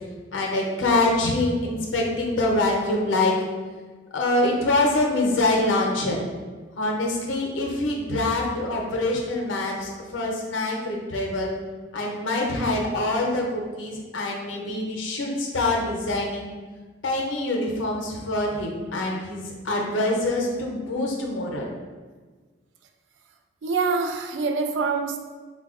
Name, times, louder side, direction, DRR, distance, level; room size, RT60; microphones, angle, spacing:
voice 1, 0.3-3.3 4.1-6.2 6.8-11.5 11.9-16.5 17.0-21.7, left 2 dB, 85° left, 0 dB, 0.6 m, -25 dB
voice 2, 23.6-25.2, right 4 dB, 70° right, 5 dB, 0.3 m, -25 dB
4.0 x 2.2 x 2.4 m, 1.4 s
head